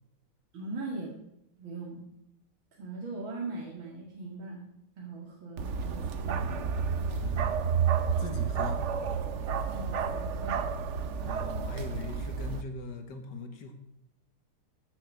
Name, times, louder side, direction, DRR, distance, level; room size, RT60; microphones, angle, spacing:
voice 1, 0.5-1.1 1.6-2.0 2.8-4.6 5.0-6.5 9.7-10.7 11.2-11.3, right 3 dB, 65° right, -3 dB, 2.8 m, -40 dB
Bark, 5.6-12.6, right 6 dB, 85° right, 0.6 m, -30 dB
voice 2, 7.1-7.7 8.2-8.8 11.2-13.7, left 3 dB, 55° left, 6 dB, 1.9 m, -41 dB
15.0 x 7.1 x 6.2 m, 0.80 s
omnidirectional pair, 2.4 m